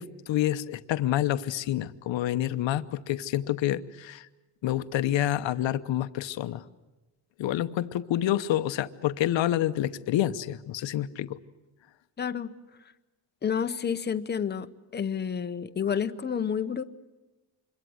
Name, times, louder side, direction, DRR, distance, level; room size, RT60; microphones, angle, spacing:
voice 1, 0.0-4.3 4.6-6.6 7.4-11.4, left 12 dB, 85° left, 12 dB, 1.0 m, -28 dB
voice 2, 12.2-12.5 13.4-14.7 14.9-16.8, left 7 dB, 25° left, 10 dB, 0.8 m, -29 dB
26.5 x 22.5 x 7.9 m, 1.1 s
cardioid pair, 170°, 44 cm